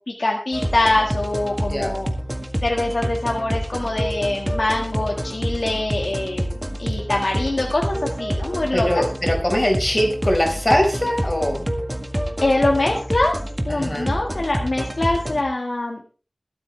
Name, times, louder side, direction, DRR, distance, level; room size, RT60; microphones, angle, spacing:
voice 1, 0.2-2.1 2.6-6.5 6.8-9.0 12.4-13.3 13.7-16.0, left 2 dB, 85° left, 0 dB, 1.8 m, -23 dB
sound 1, 0.5-15.4, equal, 20° right, 1.8 m, -27 dB
voice 2, 8.7-11.7 13.7-14.1, left 1 dB, 45° left, 2 dB, 5.0 m, -21 dB
22.5 x 8.5 x 3.4 m, 0.37 s
wide cardioid pair, 50°, 0 cm